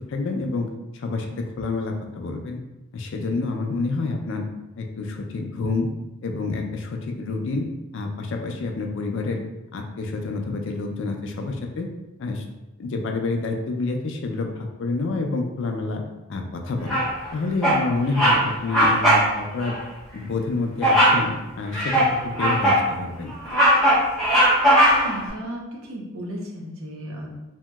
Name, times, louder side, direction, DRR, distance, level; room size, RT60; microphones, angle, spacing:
voice 1, 0.1-0.7 0.9-2.6 2.9-4.5 4.8-5.9 6.2-7.7 7.9-9.4 9.7-11.9 12.2-12.4 12.8-16.0 16.3-17.0 17.3-19.8 20.1-23.3, left 3 dB, 55° left, 3 dB, 0.3 m, -28 dB
Bird vocalization bird call bird song, 16.9-17.3 17.6-17.8 18.1-18.4 18.7-19.3 19.6-19.8 20.8-21.2 21.7-22.9 23.3-25.2, equal, ahead, 0.7 m, -18 dB
voice 2, 24.9-27.3, equal, 65° right, -1 dB, 0.6 m, -34 dB
2.9 x 2.7 x 2.2 m, 1.0 s
head